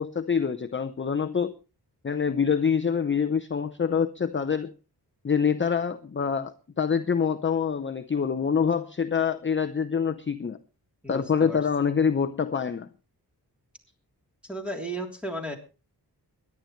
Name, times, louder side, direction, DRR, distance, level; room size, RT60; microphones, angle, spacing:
voice 1, 0.0-1.6 2.0-4.7 5.2-10.6 11.1-12.9, left 6 dB, 30° left, 0.7 m, -26 dB
voice 2, 11.0-11.6 14.4-15.6, right 1 dB, 5° right, 3.3 m, -34 dB
23.0 x 10.5 x 3.2 m
wide cardioid pair, 125°, 40 cm